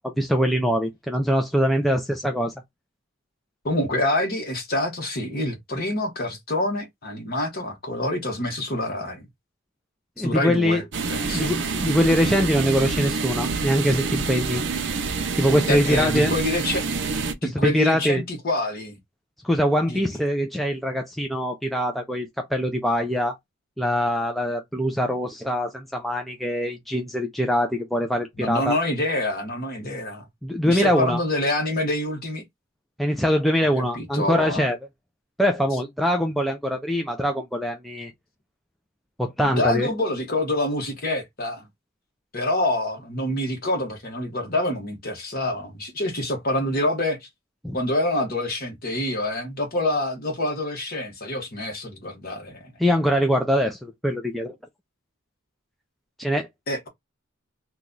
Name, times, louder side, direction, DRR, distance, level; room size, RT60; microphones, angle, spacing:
voice 1, 0.2-2.5 10.2-10.8 11.3-14.6 15.4-16.3 17.4-18.2 19.4-23.4 23.8-28.8 30.4-31.2 33.0-34.8 35.4-38.1 39.2-39.9 47.6-47.8 52.8-54.5 56.2-56.5, equal, ahead, 0.4 m, -23 dB
voice 2, 3.6-9.3 10.2-10.8 11.1-11.5 15.7-16.8 17.4-18.9 19.9-20.0 28.4-30.2 30.7-32.4 33.9-34.7 39.4-41.6 42.3-47.3 47.7-52.7 56.7-56.9, left 1 dB, 45° left, 1.2 m, -26 dB
sound 1, 10.9-17.3, right 4 dB, 55° right, 0.5 m, -27 dB
3.0 x 2.3 x 3.8 m
head